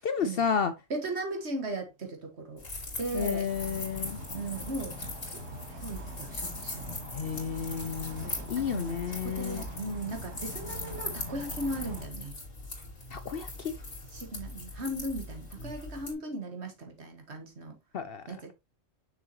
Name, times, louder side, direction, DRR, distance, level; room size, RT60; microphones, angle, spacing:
voice 1, 0.0-0.7 3.1-4.2 7.1-9.6 13.1-13.7 17.9-18.2, left 6 dB, 55° left, 0.7 m, -31 dB
voice 2, 0.9-2.6 3.0-3.5 4.3-5.0 5.3-5.4 5.7-6.8 8.0-12.3 14.1-17.8 18.3-18.5, right 2 dB, 55° right, 1.9 m, -37 dB
sound 1, 2.6-16.1, left 2 dB, 85° left, 3.2 m, -41 dB
sound 2, 3.5-12.1, equal, 80° right, 1.9 m, -43 dB
6.7 x 6.3 x 2.9 m
omnidirectional pair, 1.3 m